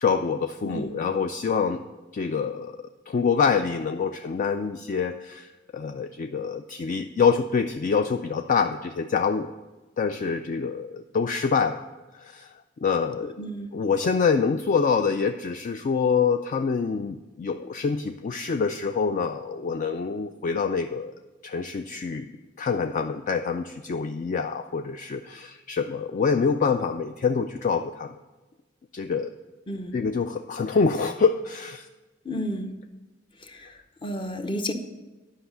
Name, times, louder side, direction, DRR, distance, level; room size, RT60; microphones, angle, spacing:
voice 1, 0.0-1.8 2.1-2.7 3.1-9.5 10.0-11.8 12.2-12.5 12.8-13.3 13.7-21.1 21.4-22.3 22.6-28.2 28.9-29.3 29.9-31.9, left 5 dB, 40° left, 7 dB, 0.3 m, -26 dB
voice 2, 0.6-0.9 13.4-13.7 29.7-30.0 32.2-32.7 33.4-33.7 34.0-34.7, equal, 25° left, 7 dB, 0.8 m, -31 dB
10.0 x 5.5 x 6.9 m, 1.2 s
head